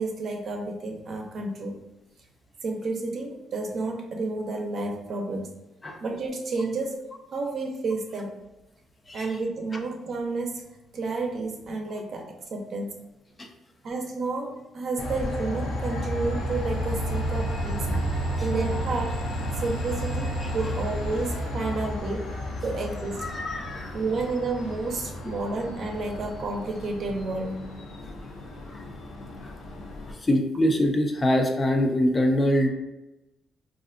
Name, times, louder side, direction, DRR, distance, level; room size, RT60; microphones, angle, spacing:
voice 1, 0.0-1.8 2.6-5.5 6.0-7.0 7.3-8.4 9.1-10.6 10.9-12.9 13.8-17.9 18.4-19.2 19.6-22.3 22.6-23.3 23.9-27.7, right 3 dB, 55° right, 1 dB, 0.6 m, -31 dB
Train, 15.0-30.1, equal, 75° left, 0.6 m, -32 dB
voice 2, 23.2-23.9 28.7-28.9 29.4-29.5 30.1-32.7, left 1 dB, 25° left, 4 dB, 0.4 m, -24 dB
3.3 x 2.5 x 2.5 m, 0.98 s
cardioid pair, 90°, 0 cm